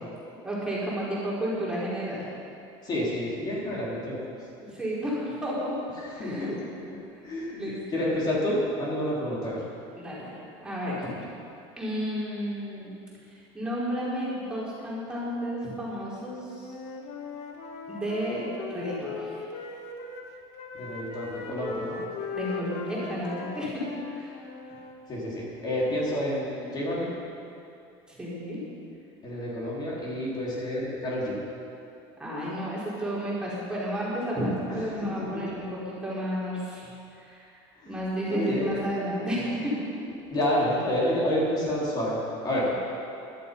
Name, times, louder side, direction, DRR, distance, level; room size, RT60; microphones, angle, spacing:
voice 1, 0.4-2.2 4.7-5.8 6.1-6.5 7.1-8.1 10.0-10.4 10.6-11.1 11.8-12.9 13.3-16.7 17.9-19.5 22.3-23.8 24.1-24.4 28.1-28.6 32.2-37.6 37.9-39.9, equal, 5° right, -8 dB, 4.3 m, -32 dB
voice 2, 2.8-4.2 6.0-6.5 6.9-7.5 7.9-9.6 20.7-22.0 25.1-27.1 29.2-31.4 35.0-35.4 37.8-38.0 38.3-38.8 40.3-42.2 42.4-42.6, left 1 dB, 35° left, -6 dB, 4.4 m, -29 dB
Wind instrument woodwind instrument, 16.5-20.3 20.5-24.9, left 4 dB, 55° left, 1.8 m, -38 dB
17.5 x 12.0 x 5.5 m, 2.7 s
supercardioid pair, 125°, 12 cm